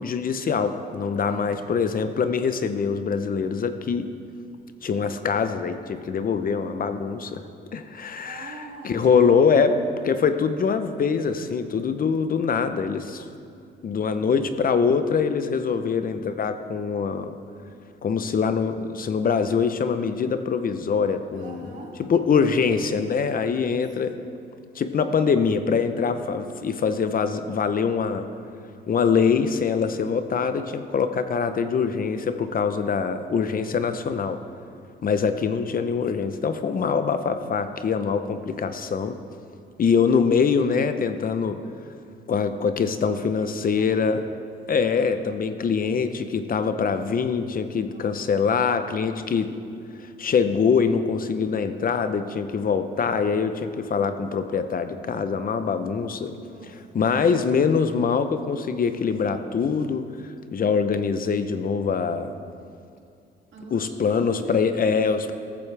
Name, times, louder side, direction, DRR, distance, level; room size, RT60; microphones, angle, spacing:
voice 1, 0.0-4.1 4.8-7.4 7.7-13.2 13.8-17.4 18.0-21.7 22.0-24.2 24.7-28.3 28.9-34.4 35.0-39.2 39.8-41.6 42.3-44.2 44.7-49.5 50.0-56.3 56.9-62.3 63.7-65.3, left 5 dB, 45° left, 9 dB, 0.8 m, -24 dB
voice 2, 1.1-1.8 8.2-9.1 9.4-9.6 21.3-22.0 23.2-23.8 43.2-44.1 47.7-48.1 56.3-56.7 63.5-65.0 65.3-65.4, right 3 dB, 70° right, -2 dB, 2.7 m, -43 dB
14.0 x 14.0 x 3.4 m, 2.4 s
cardioid pair, 90°, 20 cm